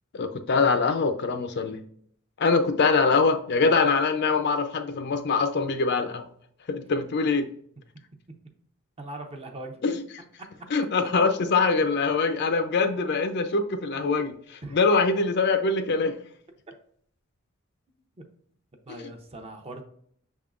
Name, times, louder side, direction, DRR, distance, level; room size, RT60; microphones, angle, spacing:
voice 1, 0.1-1.8 2.4-6.2 6.7-7.5 9.8-10.0 10.7-16.2 18.9-19.0, left 4 dB, 55° left, 8 dB, 0.4 m, -23 dB
voice 2, 9.0-9.8 10.4-10.5 14.6-14.8 16.7-16.8 18.2-18.3 18.9-19.8, right 2 dB, 30° right, 4 dB, 0.6 m, -40 dB
6.0 x 3.6 x 2.4 m, 0.64 s
head